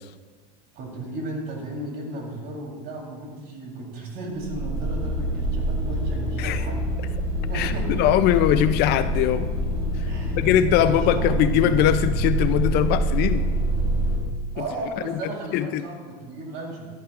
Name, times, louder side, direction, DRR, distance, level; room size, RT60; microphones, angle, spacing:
voice 1, 0.7-6.9 7.5-8.2 10.1-10.4 10.7-11.3 14.5-16.9, right 2 dB, 50° right, -1 dB, 3.8 m, -34 dB
sound 1, 4.4-14.2, right 1 dB, 25° right, 3.8 m, -26 dB
voice 2, 7.5-9.5 10.0-10.1 10.3-13.5 14.6-14.7 15.2-15.8, left 11 dB, 50° left, 12 dB, 0.5 m, -21 dB
14.5 x 11.5 x 2.5 m, 1.5 s
supercardioid pair, 110°, 21 cm